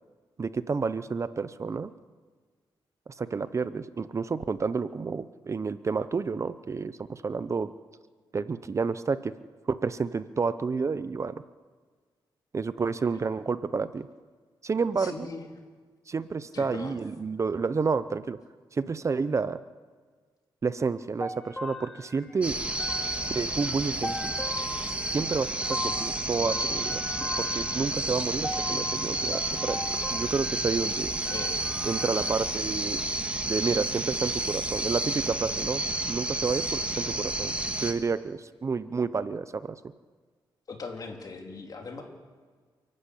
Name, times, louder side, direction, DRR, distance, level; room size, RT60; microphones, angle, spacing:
voice 1, 0.4-1.9 3.1-7.7 8.3-9.3 9.7-11.3 12.5-14.1 14.6-15.3 16.1-18.4 18.7-19.6 20.6-22.6 23.3-24.3 24.8-27.0 27.4-31.1 31.8-33.0 33.5-37.5 37.8-39.8, right 4 dB, 35° right, 13 dB, 0.7 m, -30 dB
voice 2, 15.0-15.5 16.5-17.0 31.2-31.7 40.7-42.0, left 4 dB, 45° left, 2 dB, 3.6 m, -40 dB
sound 1, 21.2-32.5, left 2 dB, 5° left, 1.3 m, -39 dB
sound 2, 22.4-37.9, right 2 dB, 15° right, 1.8 m, -31 dB
29.0 x 12.0 x 8.4 m, 1.5 s
wide cardioid pair, 115°, 9 cm